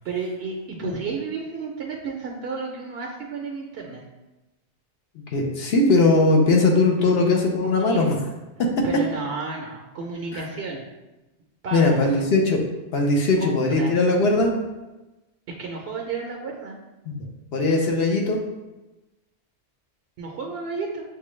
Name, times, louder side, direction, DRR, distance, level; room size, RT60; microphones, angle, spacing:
voice 1, 0.0-4.0 7.0-7.2 7.6-8.0 8.8-10.8 11.6-12.1 13.4-13.9 15.6-16.8 20.2-21.0, right 4 dB, 70° right, 0 dB, 0.8 m, -32 dB
voice 2, 5.3-8.2 11.7-12.6 12.9-14.5 17.1-17.3 17.5-18.4, left 2 dB, 65° left, 1 dB, 0.9 m, -19 dB
6.6 x 2.2 x 3.1 m, 1.1 s
omnidirectional pair, 1.2 m